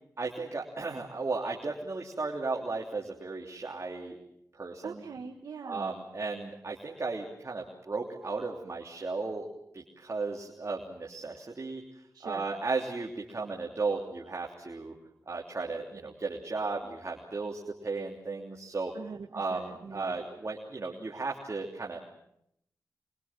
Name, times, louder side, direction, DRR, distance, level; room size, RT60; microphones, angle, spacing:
voice 1, 0.2-4.2 4.5-5.0 5.6-9.5 9.7-11.8 12.2-14.9 15.3-18.9 19.3-22.0, right 3 dB, 50° right, 0 dB, 3.2 m, -35 dB
voice 2, 4.8-5.9 12.1-12.4 18.9-20.2, right 5 dB, 90° right, 3 dB, 1.4 m, -42 dB
25.0 x 23.0 x 7.5 m, 0.76 s
cardioid pair, 60°, 6 cm